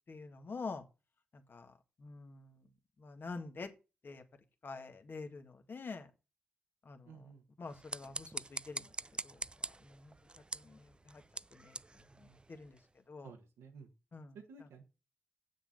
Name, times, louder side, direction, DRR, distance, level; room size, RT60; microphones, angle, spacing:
voice 1, 0.1-0.8 1.5-1.7 2.0-2.6 3.0-3.7 4.0-4.2 4.6-6.1 6.9-7.1 7.6-8.9 9.2-9.4 9.8-10.1 10.5-11.2 11.5-11.7 12.2-12.8 13.1-13.3 14.1-14.3, left 4 dB, 55° left, 6 dB, 1.8 m, -46 dB
voice 2, 7.0-7.5 13.2-13.9 14.3-14.8, right 5 dB, 85° right, 2 dB, 1.5 m, -53 dB
sound 1, 7.6-12.9, right 2 dB, 25° right, 0.4 m, -45 dB
7.7 x 6.6 x 6.5 m, 0.30 s
supercardioid pair, 45°, 4 cm